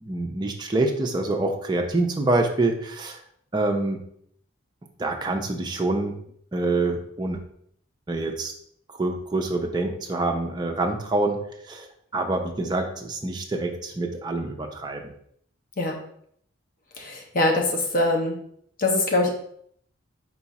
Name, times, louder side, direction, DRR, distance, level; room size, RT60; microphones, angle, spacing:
voice 1, 0.0-3.2 3.5-4.0 5.0-6.1 6.5-7.4 8.1-8.5 9.0-11.4 11.7-11.9 12.1-15.1, right 2 dB, 20° right, 2 dB, 0.5 m, -26 dB
voice 2, 17.0-18.3 18.8-19.3, left 2 dB, 45° left, 1 dB, 0.6 m, -23 dB
4.7 x 2.4 x 4.0 m, 0.67 s
head